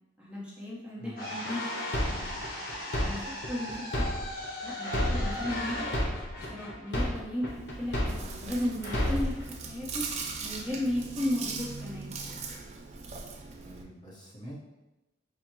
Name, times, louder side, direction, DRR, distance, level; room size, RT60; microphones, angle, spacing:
voice 1, 0.2-1.6 1.9-2.4 3.0-4.0 4.6-5.9 6.4-10.1 10.4-12.2, left 1 dB, 5° right, -7 dB, 0.7 m, -35 dB
voice 2, 1.0-1.4 13.6-14.5, equal, 20° left, -5 dB, 0.9 m, -46 dB
sound 1, 1.1-7.3, left 1 dB, 45° left, 1.1 m, -39 dB
sound 2, 1.4-4.5 4.8-8.5 8.8-9.4, left 1 dB, 65° left, 1.0 m, -31 dB
Chewing mastication, 7.5-13.8, right 4 dB, 35° right, 0.3 m, -40 dB
4.5 x 2.0 x 4.4 m, 1.0 s
head